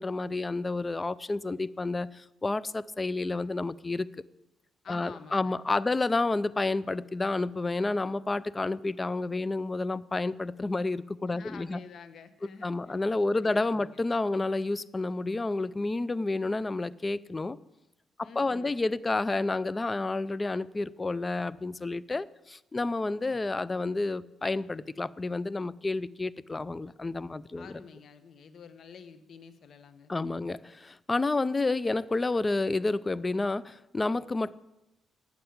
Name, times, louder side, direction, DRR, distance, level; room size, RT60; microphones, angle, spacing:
voice 1, 0.0-4.1 4.9-11.8 12.6-17.6 18.2-27.7 30.1-34.6, left 2 dB, 20° left, 19 dB, 0.4 m, -30 dB
voice 2, 4.8-5.6 11.3-13.1 13.3-14.0 18.2-18.8 27.5-30.1, left 5 dB, 60° left, 11 dB, 1.1 m, -49 dB
8.9 x 7.8 x 8.5 m, 0.95 s
cardioid pair, 90°, 0 cm